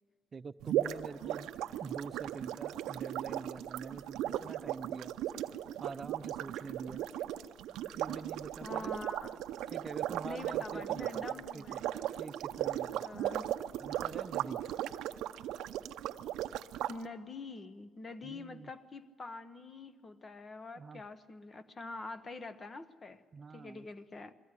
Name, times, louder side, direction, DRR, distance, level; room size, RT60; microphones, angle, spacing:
voice 1, 0.3-1.5 1.8-5.1 5.8-7.1 8.0-8.9 9.7-11.6 12.2-13.3 13.8-14.6 18.2-18.7 20.8-21.0 23.3-23.9, right 5 dB, 40° right, 0.6 m, -45 dB
sound 1, 0.6-16.9, right 12 dB, 90° right, 0.5 m, -37 dB
voice 2, 8.6-9.4 10.2-11.8 13.0-13.5 16.9-23.2 23.5-24.3, left 3 dB, 35° left, 0.9 m, -45 dB
22.0 x 15.0 x 9.7 m
cardioid pair, 90°, 0 cm